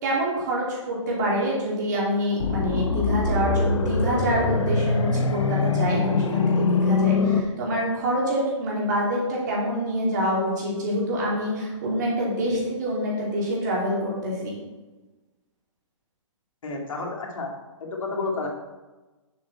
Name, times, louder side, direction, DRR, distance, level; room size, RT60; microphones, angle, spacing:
voice 1, 0.0-14.5, equal, 35° right, -4 dB, 2.8 m, -26 dB
sound 1, 2.4-7.4, left 4 dB, 65° left, 1.0 m, -23 dB
voice 2, 16.6-17.5 17.8-18.5, left 3 dB, 90° left, 1 dB, 2.2 m, -30 dB
8.7 x 7.2 x 4.1 m, 1.2 s
hypercardioid pair, 175°, 17 cm